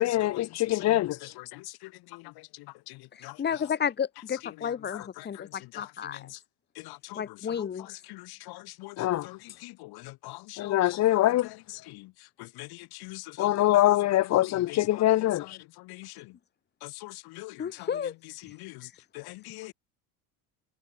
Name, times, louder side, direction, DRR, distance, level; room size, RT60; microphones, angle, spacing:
voice 1, 0.0-1.3 9.0-9.3 10.6-11.5 13.4-15.6, left 14 dB, 40° left, 1.1 m, -24 dB
voice 2, 0.7-3.4 5.2-6.4 6.8-7.2 7.6-10.8 11.1-11.6 11.9-12.1 12.4-14.4 14.7-15.0 15.4-16.3 16.8-17.9 18.4-18.9 19.1-19.7, left 22 dB, 65° left, 7.1 m, -44 dB
voice 3, 3.1-6.3 7.1-8.0 17.6-18.1 18.5-18.6, left 8 dB, 25° left, 2.7 m, -32 dB
cardioid pair, 150°, 41 cm